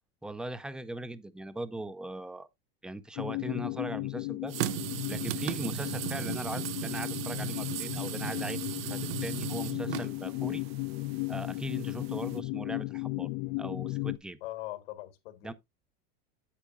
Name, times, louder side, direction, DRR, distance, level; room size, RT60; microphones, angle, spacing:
voice 1, 0.2-2.5 2.8-4.5 5.1-8.6 8.9-10.6 11.3-13.3 13.6-14.4 15.4-15.5, right 2 dB, 5° right, 0.4 m, -39 dB
sound 1, 3.2-14.2, left 22 dB, 55° left, 0.5 m, -35 dB
sound 2, 4.5-12.4, right 14 dB, 80° right, 0.6 m, -37 dB
voice 2, 14.4-15.5, left 16 dB, 80° left, 1.6 m, -41 dB
8.4 x 8.0 x 2.5 m
supercardioid pair, 135°, 29 cm